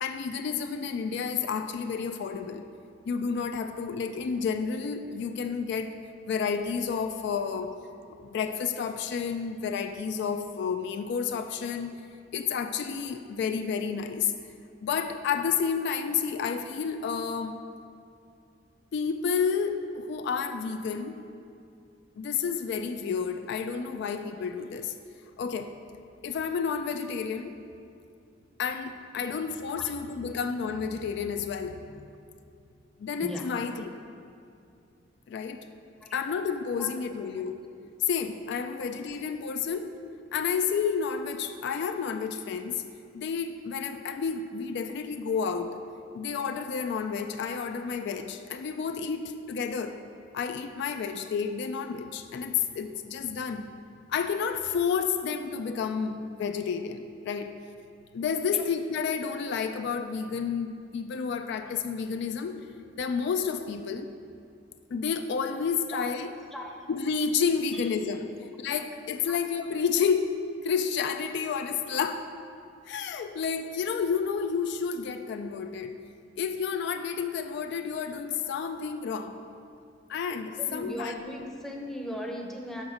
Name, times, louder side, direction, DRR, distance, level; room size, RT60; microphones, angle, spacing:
voice 1, 0.0-2.6 3.1-6.0 6.3-7.7 8.1-12.0 12.3-14.3 14.8-17.6 18.9-21.2 22.2-24.9 25.4-25.7 26.2-27.6 28.6-32.1 33.0-33.9 35.3-35.6 36.1-37.6 38.0-39.9 40.3-42.8 43.1-45.8 46.1-49.9 50.3-53.7 54.1-57.6 58.1-62.6 62.9-64.1 64.9-66.3 66.9-68.3 68.6-70.3 70.6-72.3 72.9-76.0 76.4-79.4 80.1-81.1, left 6 dB, 65° left, 7 dB, 0.3 m, -30 dB
voice 2, 80.6-82.8, equal, ahead, 0 dB, 0.6 m, -38 dB
6.5 x 5.1 x 4.9 m, 2.5 s
head